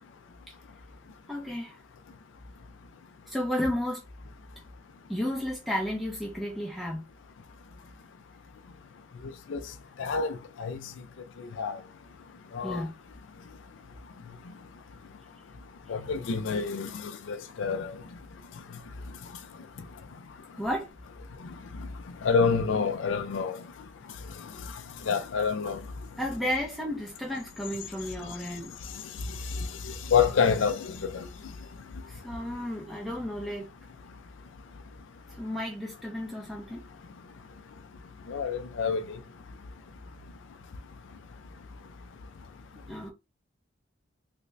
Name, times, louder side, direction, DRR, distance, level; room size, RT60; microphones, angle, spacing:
voice 1, 1.3-1.8 3.3-4.0 5.1-7.0 12.6-12.9 20.5-20.9 26.2-28.7 32.1-33.7 35.3-36.8 42.9-43.1, left 1 dB, ahead, 0.7 m, -32 dB
voice 2, 10.0-10.8 11.6-11.8 12.5-12.8 15.9-17.9 22.2-23.6 25.1-25.8 29.6-31.3 38.3-39.2, left 5 dB, 75° left, 0.4 m, -27 dB
3.3 x 2.5 x 3.2 m
head